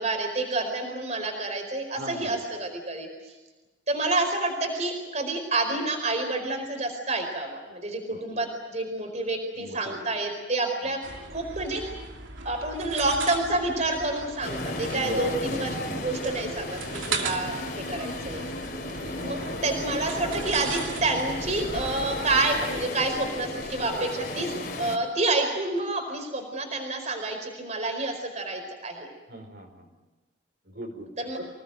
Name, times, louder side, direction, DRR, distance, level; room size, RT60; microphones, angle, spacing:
voice 1, 0.0-3.3 3.9-11.0 11.3-12.0 12.4-15.8 16.0-18.4 19.1-24.5 24.8-29.1 31.2-31.4, right 2 dB, 35° right, 4 dB, 4.7 m, -28 dB
voice 2, 2.0-2.3 8.1-8.4 9.5-10.0 10.8-10.9 14.9-15.2 29.3-29.9 30.7-31.1 31.4-31.5, right 1 dB, 55° right, 2 dB, 5.1 m, -38 dB
sound 1, 11.0-22.9, right 4 dB, 80° right, 2.6 m, -38 dB
sound 2, 14.4-25.0, left 2 dB, 45° left, 3.3 m, -34 dB
27.0 x 19.0 x 9.2 m, 1.2 s
head